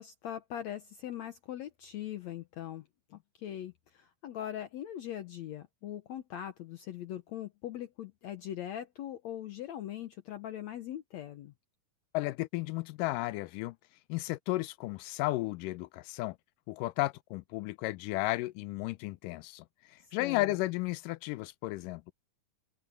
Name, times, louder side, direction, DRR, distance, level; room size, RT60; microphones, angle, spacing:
voice 1, 0.0-11.5 20.2-20.6, left 11 dB, 65° left, 1.9 m, -41 dB
voice 2, 12.1-13.8 14.1-16.4 16.7-19.7 20.1-22.1, left 19 dB, 85° left, 2.2 m, -33 dB
omnidirectional pair, 3.8 m